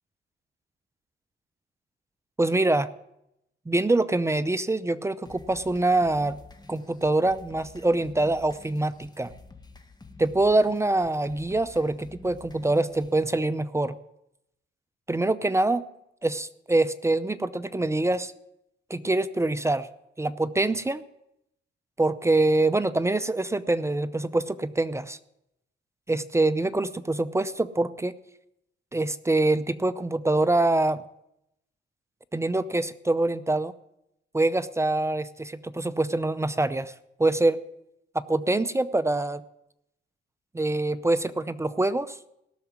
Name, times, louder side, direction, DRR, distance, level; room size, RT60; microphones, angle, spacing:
voice 1, 2.4-2.9 3.7-6.4 6.7-9.3 10.2-14.0 15.1-15.8 16.2-18.3 18.9-19.9 20.2-21.0 22.0-25.2 26.1-28.1 28.9-31.0 32.3-33.7 34.3-36.9 37.2-37.6 38.1-39.4 40.5-42.2, right 2 dB, 15° right, 14 dB, 0.6 m, -25 dB
sound 1, 5.3-13.2, left 3 dB, 20° left, 1.7 m, -49 dB
17.5 x 7.0 x 9.5 m, 0.81 s
cardioid pair, 90°, 20 cm